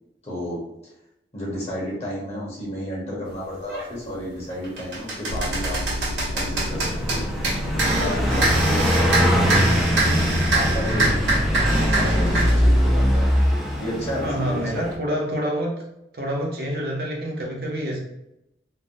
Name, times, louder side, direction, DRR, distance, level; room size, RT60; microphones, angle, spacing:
voice 1, 0.2-0.6 1.3-5.8 6.3-7.3 7.7-9.3 10.5-11.3 11.7-13.3 13.8-14.9, equal, 35° left, -5 dB, 1.0 m, -31 dB
sound 1, 3.7-3.9 4.4-12.6, right 1 dB, 85° right, 1.0 m, -24 dB
sound 2, 5.3-13.3, left 1 dB, 90° left, 0.3 m, -31 dB
Car passing by, 6.5-15.0, equal, ahead, 0.3 m, -22 dB
voice 2, 14.2-15.7 16.1-18.0, equal, 55° right, -1 dB, 0.6 m, -27 dB
3.2 x 2.1 x 2.6 m, 0.85 s
head